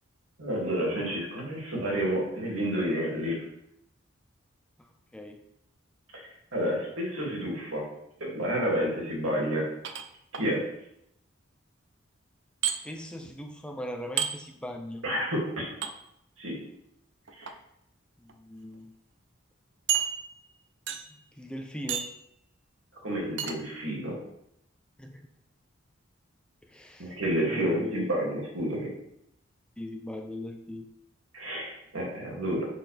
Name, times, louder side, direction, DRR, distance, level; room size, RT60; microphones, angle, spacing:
voice 1, 0.4-3.4 6.5-7.8 8.2-9.6 10.4-10.6 15.0-15.7 16.4-16.6 17.4-17.5 23.0-24.1 27.0-28.9 31.3-32.7, equal, 80° right, -3 dB, 2.6 m, -30 dB
voice 2, 4.8-5.4 12.8-15.0 18.2-18.9 21.4-22.1 25.0-25.2 26.7-27.2 27.5-28.1 29.8-30.9, left 1 dB, 5° left, 4 dB, 0.5 m, -39 dB
sound 1, 9.8-10.5 12.6-12.8 14.2-14.3 15.8-15.9 17.3-17.5 18.3-18.4 18.7-18.8 19.9-20.5 20.9-21.2 21.9-22.2 23.4-23.6, right 8 dB, 60° right, 0.6 m, -30 dB
6.7 x 5.9 x 3.5 m, 0.78 s
head